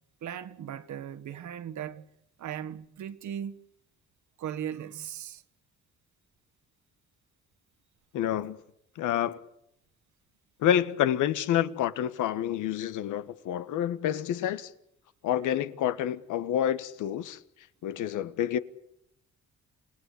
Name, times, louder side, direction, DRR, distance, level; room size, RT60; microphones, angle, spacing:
voice 1, 0.2-2.0 2.4-3.6 4.4-5.4, right 9 dB, 70° right, 1.7 m, -37 dB
voice 2, 8.1-8.6 9.0-9.4 10.6-14.7 15.2-17.4 17.8-18.6, left 10 dB, 90° left, 1.4 m, -28 dB
28.5 x 18.0 x 8.4 m
cardioid pair, 90°, 30 cm